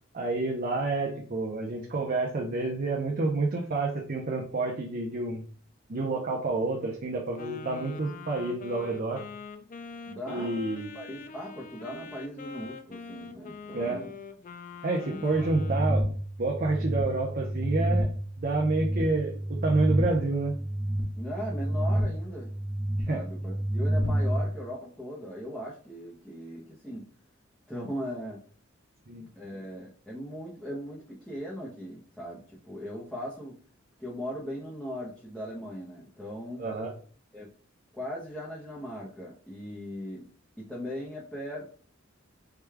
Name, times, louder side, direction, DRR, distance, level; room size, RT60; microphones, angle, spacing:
voice 1, 0.1-5.4 5.9-9.2 10.3-10.9 13.7-14.0 14.8-16.1 16.4-18.1 18.4-20.6 23.1-23.2 29.1-29.3 36.6-36.9, right 3 dB, 45° right, 0 dB, 0.6 m, -29 dB
Wind instrument woodwind instrument, 7.4-16.0, left 4 dB, 40° left, 0.4 m, -43 dB
voice 2, 10.1-14.1 15.0-15.5 21.2-22.5 23.1-27.1 27.7-28.4 29.4-33.6 34.0-36.7 37.3-37.5 37.9-40.3 40.6-41.7, equal, 5° left, -6 dB, 0.7 m, -39 dB
sound 1, 15.3-24.4, right 1 dB, 85° right, 1.1 m, -29 dB
4.7 x 2.3 x 3.3 m, 0.43 s
head